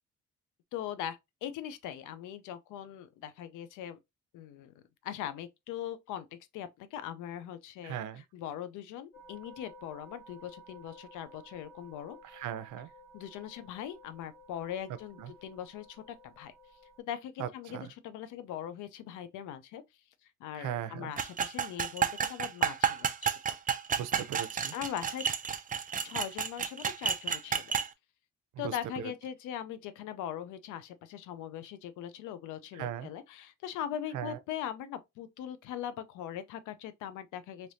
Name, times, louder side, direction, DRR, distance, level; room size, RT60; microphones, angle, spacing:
voice 1, 0.7-4.0 4.3-8.0 8.3-12.4 13.1-16.5 17.1-17.8 18.0-19.8 20.4-23.3 24.7-25.2 26.0-27.8 28.6-37.7, left 10 dB, 90° left, 0.5 m, -40 dB
voice 2, 7.8-8.2 12.2-12.9 15.2-15.3 17.4-17.9 20.5-21.1 24.0-24.7 28.5-29.1 32.7-33.1 34.1-34.4, right 10 dB, 80° right, 0.6 m, -38 dB
sound 1, 9.1-17.0, equal, 45° left, 1.6 m, -55 dB
sound 2, 21.2-27.9, right 7 dB, 30° right, 0.4 m, -31 dB
3.2 x 2.9 x 2.6 m
cardioid pair, 90°, 30 cm